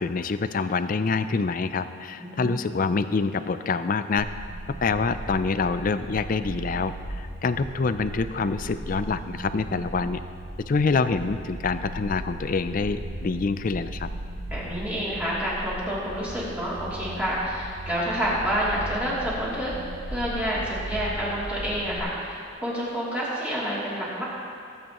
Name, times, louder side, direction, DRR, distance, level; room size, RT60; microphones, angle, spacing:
voice 1, 0.0-4.3 4.8-10.2 10.7-14.1, left 4 dB, 40° left, 11 dB, 0.4 m, -26 dB
voice 2, 2.2-2.6 14.5-19.7 20.1-24.2, equal, 5° right, -8 dB, 2.9 m, -28 dB
sound 1, 4.3-22.0, right 1 dB, 50° right, 0.9 m, -37 dB
19.5 x 8.6 x 3.0 m, 2.6 s
head